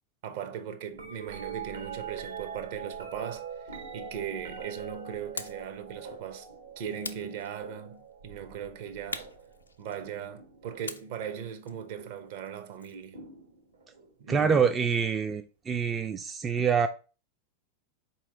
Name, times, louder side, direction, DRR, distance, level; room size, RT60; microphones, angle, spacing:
voice 1, 0.2-6.5 6.8-9.3 9.8-13.2 14.2-14.8, right 8 dB, 50° right, 0.7 m, -39 dB
sound 1, 0.9-11.0 12.0-12.4 13.1-14.1 15.9-16.0, right 6 dB, 70° right, 1.1 m, -43 dB
sound 2, 5.4-5.7 7.0-7.9 9.1-10.2 10.9-13.1, left 4 dB, 75° left, 0.4 m, -42 dB
voice 2, 14.3-16.9, right 6 dB, 20° right, 0.3 m, -26 dB
4.5 x 2.9 x 3.5 m
figure-of-eight pair, 90°, 0 cm